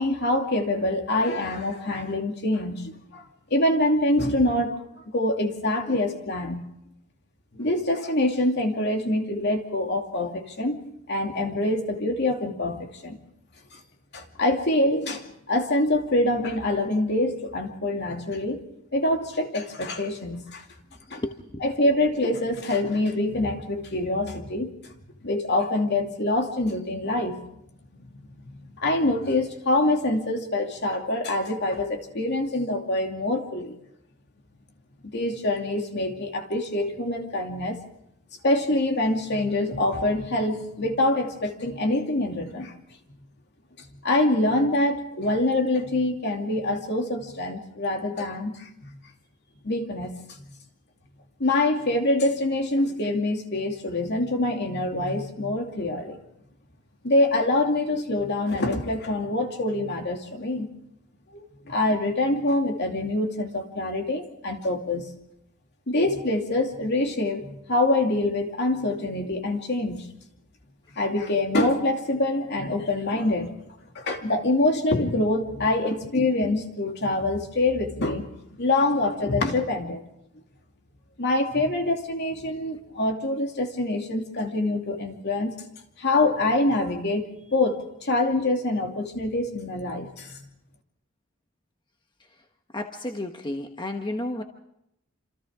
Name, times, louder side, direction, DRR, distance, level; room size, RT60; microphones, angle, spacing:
voice 1, 0.0-3.2 3.5-6.6 7.5-10.8 11.1-13.2 13.7-13.8 14.1-18.6 18.9-20.7 21.1-21.2 21.6-24.7 25.2-27.4 28.1-33.8 35.0-37.8 38.4-42.7 44.0-48.9 49.6-50.4 51.4-56.2 57.0-60.7 61.3-65.1 65.9-70.1 70.9-73.6 73.9-80.0 81.2-85.6 86.0-90.4, left 2 dB, 55° left, 3 dB, 2.7 m, -25 dB
voice 2, 21.1-21.6 92.7-94.4, left 1 dB, 25° left, 4 dB, 1.2 m, -32 dB
27.5 x 27.5 x 3.7 m, 0.81 s
head